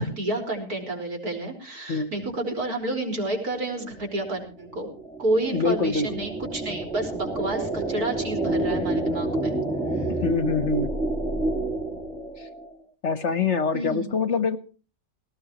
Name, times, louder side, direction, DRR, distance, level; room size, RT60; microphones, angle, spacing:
voice 1, 0.0-4.9 5.2-9.6 9.9-10.0 13.7-14.1, right 2 dB, 60° right, 3 dB, 5.4 m, -30 dB
sound 1, 3.8-12.7, right 2 dB, ahead, 1.8 m, -29 dB
voice 2, 5.5-6.2 10.2-10.9 12.4-12.5 13.0-14.6, left 4 dB, 50° left, 12 dB, 1.2 m, -24 dB
19.0 x 18.0 x 3.0 m, 0.36 s
omnidirectional pair, 1.8 m